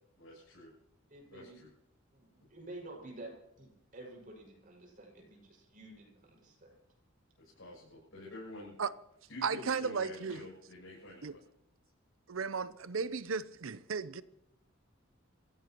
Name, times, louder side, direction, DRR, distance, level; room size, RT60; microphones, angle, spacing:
voice 1, 0.2-0.7 1.3-1.7 7.4-8.7 9.3-11.5, left 2 dB, 85° left, 7.5 m, -49 dB
voice 2, 1.1-1.6 2.1-6.8, right 2 dB, 45° right, 5.9 m, -50 dB
voice 3, 9.4-10.4 11.2-11.3 12.3-14.2, right 5 dB, 80° right, 0.7 m, -35 dB
27.0 x 16.0 x 3.0 m
head